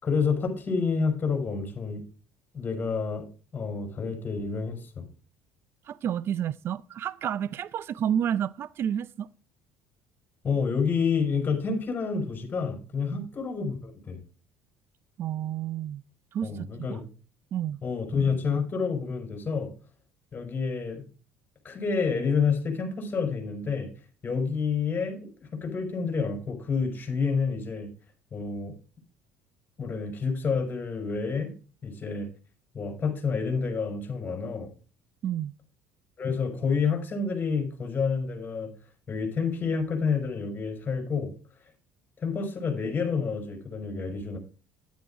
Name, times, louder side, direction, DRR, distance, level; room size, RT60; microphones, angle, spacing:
voice 1, 0.0-2.0 2.5-3.3 3.5-5.1 10.4-14.2 16.4-17.0 17.8-19.7 20.3-21.0 21.6-23.9 24.2-27.9 28.3-28.7 29.8-31.5 31.8-32.3 32.7-34.7 36.2-38.7 39.1-41.3 42.2-44.4, left 5 dB, 35° left, 4.9 m, -29 dB
voice 2, 5.9-9.3 13.1-13.3 15.2-16.0 16.3-17.0 17.5-17.8 35.2-35.5, right 9 dB, 50° right, 0.5 m, -30 dB
10.5 x 9.1 x 3.6 m
hypercardioid pair, 70°, 5 cm